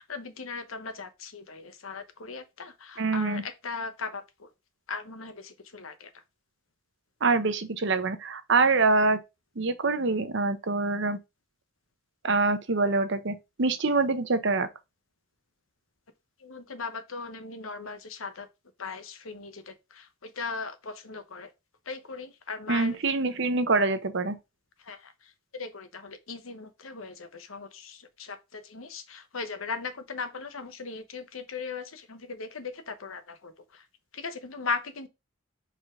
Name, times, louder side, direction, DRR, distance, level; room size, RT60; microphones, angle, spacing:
voice 1, 0.0-4.5 4.9-6.1 16.4-18.5 18.8-21.5 21.9-23.0 24.8-33.8 34.1-35.1, left 4 dB, 85° left, 1.1 m, -38 dB
voice 2, 3.0-3.4 7.2-9.2 9.6-11.2 12.2-14.7 22.7-24.4, right 3 dB, 60° right, 0.8 m, -25 dB
5.0 x 3.9 x 5.0 m
head